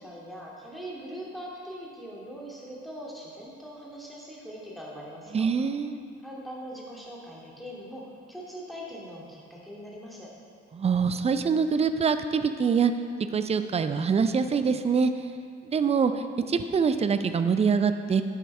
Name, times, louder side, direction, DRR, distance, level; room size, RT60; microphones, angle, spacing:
voice 1, 0.0-5.5 6.2-10.3, equal, ahead, -5 dB, 2.5 m, -41 dB
voice 2, 5.3-6.0 10.7-12.9 13.3-15.1 15.7-16.1 16.5-18.2, right 6 dB, 20° right, 10 dB, 0.5 m, -24 dB
11.0 x 8.3 x 3.4 m, 2.3 s
figure-of-eight pair, 45°, 34 cm